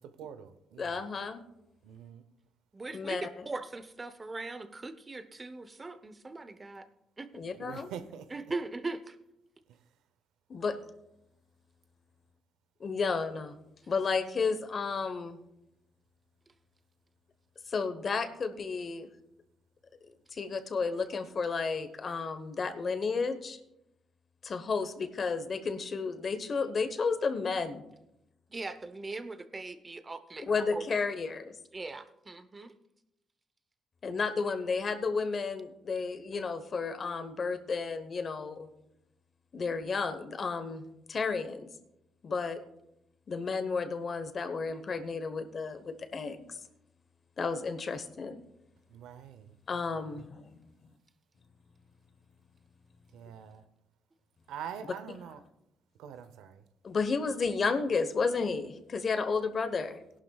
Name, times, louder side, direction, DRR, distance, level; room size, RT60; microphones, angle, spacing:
voice 1, 0.0-1.0 1.8-2.2 7.5-8.3 9.7-9.8 48.9-50.1 53.1-53.6 54.5-55.4 56.0-56.6, right 8 dB, 90° right, 11 dB, 0.8 m, -45 dB
voice 2, 0.8-1.4 2.9-3.5 7.3-7.9 10.5-10.8 12.8-13.6 13.9-15.4 17.7-19.1 20.3-23.6 24.4-27.8 30.4-31.6 34.0-38.7 39.5-41.7 42.2-42.6 43.3-46.6 47.4-48.4 49.7-50.7 56.8-60.0, left 4 dB, 45° left, 10 dB, 1.1 m, -32 dB
voice 3, 2.7-6.8 7.2-7.3 8.3-9.2 28.5-30.5 30.7-30.8 31.7-32.7, right 3 dB, 25° right, 11 dB, 0.8 m, -40 dB
17.5 x 11.5 x 2.4 m, 0.86 s
cardioid pair, 90°, 0 cm